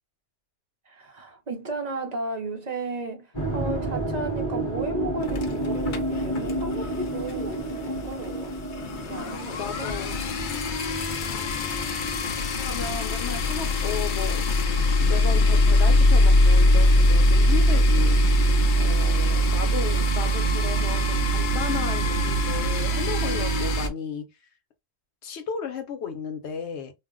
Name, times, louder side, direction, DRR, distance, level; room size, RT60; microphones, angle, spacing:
voice 1, 0.9-8.6 9.1-10.0 19.0-19.5, right 2 dB, 45° right, 0.6 m, -35 dB
sound 1, 3.3-13.5, right 1 dB, 25° left, 1.2 m, -31 dB
sound 2, 5.2-7.0 7.3-7.5 7.8-7.9 8.1-23.9, left 1 dB, 55° left, 0.7 m, -22 dB
voice 2, 9.1-10.2 11.3-11.6 12.5-14.4 15.0-18.2 18.7-24.3 25.2-26.9, left 6 dB, 90° left, 1.0 m, -34 dB
2.5 x 2.1 x 3.6 m
omnidirectional pair, 1.1 m